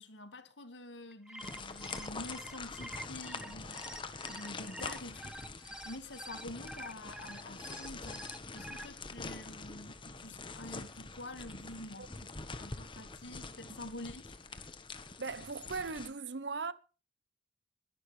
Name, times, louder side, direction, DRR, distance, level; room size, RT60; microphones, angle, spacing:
voice 1, 0.0-8.2 8.5-12.1 12.6-14.4, left 2 dB, 90° left, 2.0 m, -48 dB
sound 1, 1.1-8.9, right 1 dB, 5° right, 0.6 m, -47 dB
sound 2, 1.4-16.1, left 3 dB, 30° left, 1.4 m, -45 dB
voice 2, 15.2-16.7, right 4 dB, 80° right, 1.0 m, -38 dB
21.5 x 11.5 x 3.4 m
head